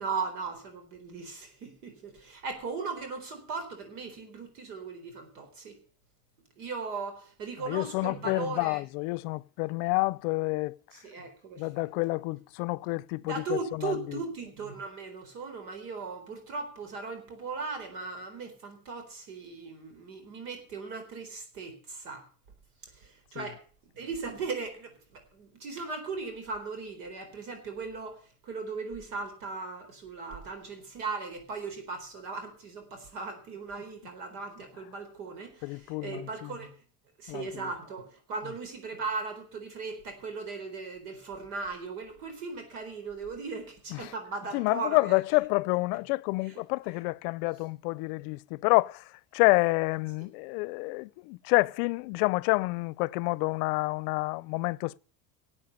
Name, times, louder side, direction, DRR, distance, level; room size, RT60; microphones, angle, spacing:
voice 1, 0.0-5.8 6.6-8.8 10.9-11.9 13.2-22.2 22.8-23.6 23.9-36.7 37.2-45.2 46.4-46.6, right 4 dB, 90° right, 4.2 m, -38 dB
voice 2, 7.6-10.8 11.6-14.2 23.4-23.5 35.6-36.6 37.3-37.7 43.9-44.1 44.5-55.0, left 25 dB, 75° left, 0.6 m, -28 dB
13.5 x 8.5 x 6.8 m
supercardioid pair, 120°, 45 cm